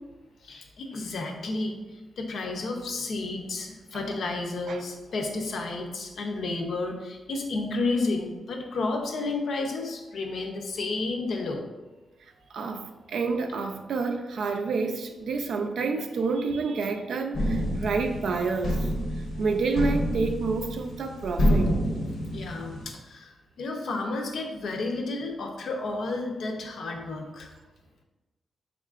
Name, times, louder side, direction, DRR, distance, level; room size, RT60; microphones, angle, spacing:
voice 1, 0.4-11.6 22.3-27.5, left 3 dB, 65° left, 3 dB, 0.6 m, -31 dB
voice 2, 12.5-18.9 19.4-21.8, right 4 dB, 70° right, 5 dB, 0.4 m, -29 dB
sound 1, 17.3-22.9, equal, 80° left, 0.9 m, -28 dB
4.7 x 3.6 x 2.4 m, 1.2 s
wide cardioid pair, 150°, 0 cm